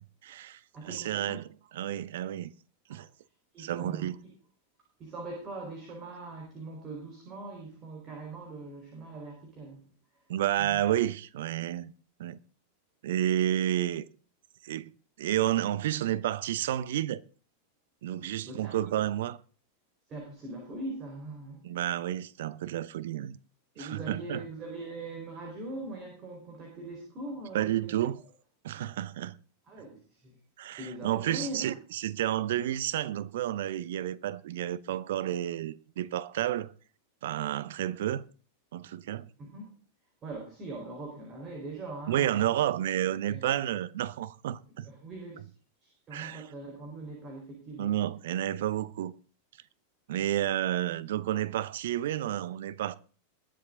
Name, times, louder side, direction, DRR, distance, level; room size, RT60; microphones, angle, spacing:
voice 1, 0.2-1.5 1.7-2.5 2.9-3.1 3.6-4.2 10.3-11.9 12.2-12.4 13.0-14.1 14.6-14.9 15.2-17.2 18.0-19.4 21.6-23.4 23.8-24.4 27.5-28.2 28.6-29.4 30.6-36.7 37.2-38.2 38.7-39.3 42.1-44.9 46.1-46.4 47.8-49.1 50.1-52.9, right 12 dB, 55° right, 0.7 m, -30 dB
voice 2, 0.7-1.4 2.9-3.1 3.5-4.1 5.0-9.9 10.6-10.8 18.2-18.8 20.1-21.8 23.7-27.7 29.7-30.3 30.8-31.7 39.4-39.7 40.2-42.4 43.3-43.5 44.8-45.5 45.8-47.9, right 2 dB, 30° right, 4.5 m, -41 dB
21.0 x 7.7 x 3.8 m
figure-of-eight pair, 90°, 0 cm